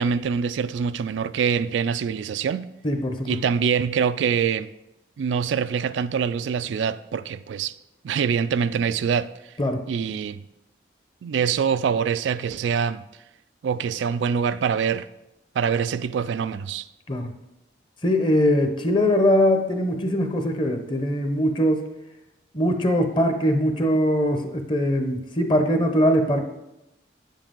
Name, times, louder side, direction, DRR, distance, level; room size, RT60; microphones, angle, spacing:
voice 1, 0.0-2.7 3.3-4.7 5.2-7.7 8.0-9.3 9.9-10.4 11.2-13.0 13.6-15.1 15.6-16.9, right 6 dB, 75° right, 0.3 m, -24 dB
voice 2, 2.8-3.4 9.6-9.8 17.1-17.3 18.0-21.8 22.5-26.4, equal, 25° left, 0.8 m, -21 dB
9.5 x 7.4 x 3.8 m
head